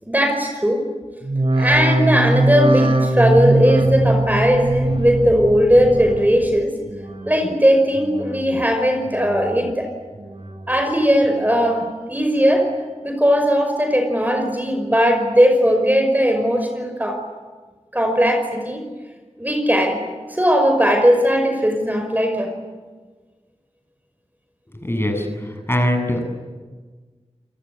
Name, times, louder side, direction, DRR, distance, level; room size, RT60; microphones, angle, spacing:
voice 1, 0.0-0.9 1.5-6.7 7.3-9.9 10.7-12.7 13.0-17.2 17.9-18.8 19.4-20.0 20.3-22.5, equal, 15° right, 4 dB, 5.6 m, -18 dB
sound 1, 1.2-6.6 6.9-7.5 8.0-8.6 9.1-9.7 10.1-10.8 11.3-11.8 12.4-12.5, right 1 dB, 50° right, 4.1 m, -21 dB
voice 2, 24.7-26.2, left 1 dB, 20° left, 5 dB, 7.6 m, -22 dB
29.0 x 19.5 x 9.7 m, 1.4 s
cardioid pair, 45°, 12 cm